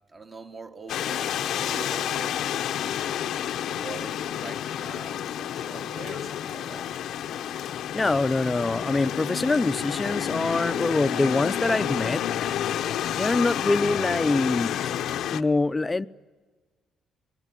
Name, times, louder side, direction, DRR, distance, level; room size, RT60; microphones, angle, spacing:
voice 1, 0.1-3.0 3.6-6.9, right 3 dB, 40° right, 4 dB, 2.5 m, -43 dB
sound 1, 0.9-15.4, left 10 dB, 80° left, 0.9 m, -30 dB
voice 2, 7.9-12.2 13.1-14.9 15.3-16.1, left 3 dB, 20° left, 14 dB, 0.7 m, -24 dB
26.5 x 20.5 x 9.1 m, 1.4 s
cardioid pair, 90°, 0 cm